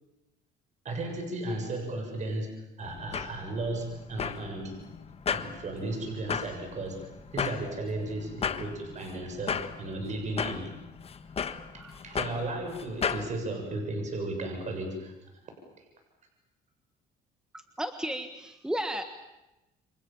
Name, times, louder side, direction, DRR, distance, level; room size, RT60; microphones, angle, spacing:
voice 1, 0.8-2.5 2.8-4.8 5.3-7.0 7.3-10.7 11.7-15.1, right 2 dB, 45° right, 4 dB, 7.2 m, -35 dB
sound 1, 2.8-13.3, left 6 dB, 35° left, 1.5 m, -36 dB
voice 2, 17.8-19.0, equal, 5° right, 7 dB, 1.6 m, -33 dB
28.0 x 25.5 x 7.3 m, 0.96 s
cardioid pair, 110°, 17 cm